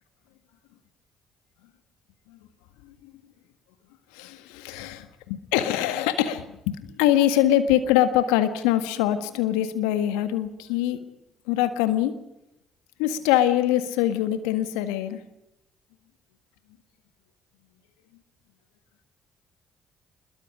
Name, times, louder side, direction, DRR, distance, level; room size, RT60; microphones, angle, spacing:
voice 1, 4.1-5.1 5.5-11.0 11.5-12.1 13.0-15.2, left 12 dB, 75° left, 10 dB, 1.7 m, -23 dB
26.5 x 21.5 x 5.0 m, 0.87 s
hypercardioid pair, 45°, 0 cm